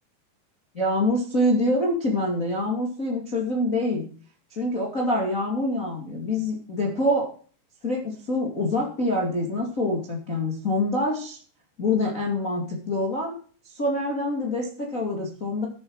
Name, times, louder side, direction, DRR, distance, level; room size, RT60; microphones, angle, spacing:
voice 1, 0.7-4.0 4.5-7.3 7.8-11.4 11.8-13.3 13.7-15.7, left 1 dB, 30° left, -1 dB, 1.6 m, -25 dB
13.5 x 8.2 x 4.9 m, 0.43 s
omnidirectional pair, 5.5 m